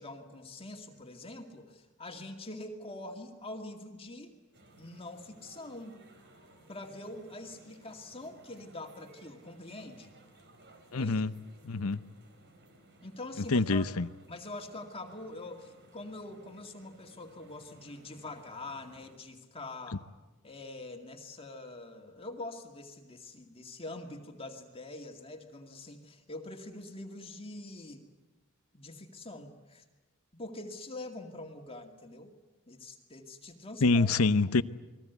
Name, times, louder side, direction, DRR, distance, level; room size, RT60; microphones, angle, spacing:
voice 1, 0.0-4.3 4.8-6.0 6.7-10.1 10.9-11.2 13.0-13.8 14.3-20.0 20.4-28.0 28.7-29.8 30.3-32.3 32.7-34.1, left 2 dB, 25° left, 2.2 m, -44 dB
sound 1, 4.5-19.2, right 1 dB, 50° right, 4.5 m, -59 dB
voice 2, 10.9-11.3 11.6-12.0 13.5-14.1 33.8-34.6, left 3 dB, 75° left, 0.8 m, -26 dB
29.5 x 21.5 x 8.2 m
head